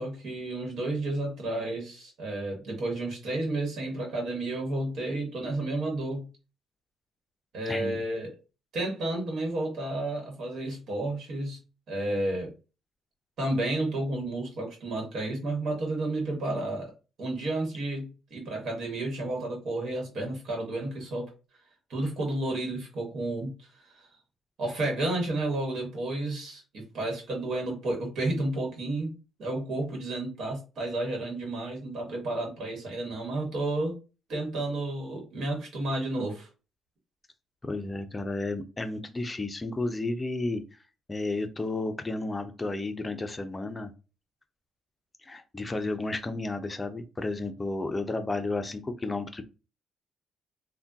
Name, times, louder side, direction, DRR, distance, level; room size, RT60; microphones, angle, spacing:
voice 1, 0.0-6.3 7.5-8.3 8.7-11.6 11.9-12.5 13.4-16.9 17.2-21.3 21.9-24.1 24.6-29.1 29.4-33.9 34.3-36.5, right 2 dB, 65° right, 0 dB, 1.2 m, -31 dB
voice 2, 7.7-8.0 37.6-40.6 41.1-43.9 45.2-49.4, left 2 dB, 20° left, 8 dB, 0.5 m, -32 dB
3.5 x 2.2 x 2.6 m, 0.32 s
cardioid pair, 90°, 0 cm